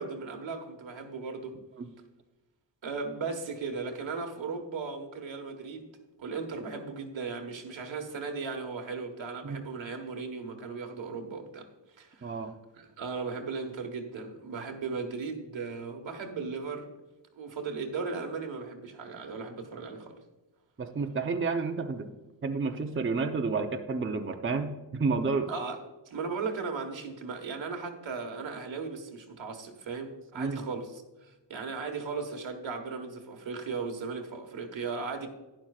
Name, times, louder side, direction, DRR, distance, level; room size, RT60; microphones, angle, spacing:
voice 1, 0.0-1.6 2.8-5.9 6.2-11.7 12.0-12.4 12.7-16.9 17.4-20.2 25.5-25.8 26.1-30.9 31.2-35.3, right 4 dB, 90° right, 4 dB, 1.5 m, -37 dB
voice 2, 12.2-12.5 20.8-22.1 22.4-25.5 30.3-30.7, right 4 dB, 30° right, 5 dB, 0.7 m, -30 dB
11.5 x 10.5 x 2.4 m, 1.1 s
wide cardioid pair, 140°, 44 cm